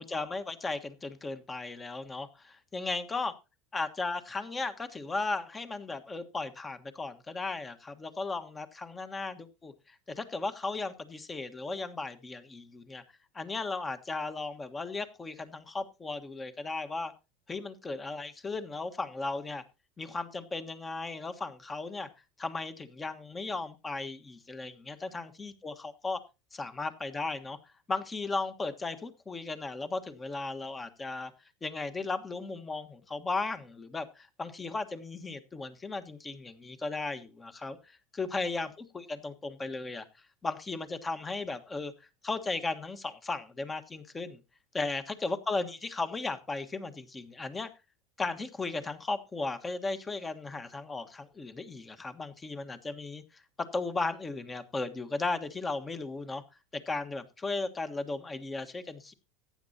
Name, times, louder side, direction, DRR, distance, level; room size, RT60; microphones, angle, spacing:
voice 1, 0.0-3.3 3.7-13.0 13.3-17.1 17.5-19.6 20.0-22.1 22.4-26.2 26.5-27.6 27.9-31.3 31.6-41.9 42.2-44.4 44.7-47.7 48.2-56.4 56.7-59.1, left 3 dB, 20° left, 10 dB, 1.4 m, -36 dB
14.5 x 9.9 x 2.8 m, 0.27 s
supercardioid pair, 110°, 0 cm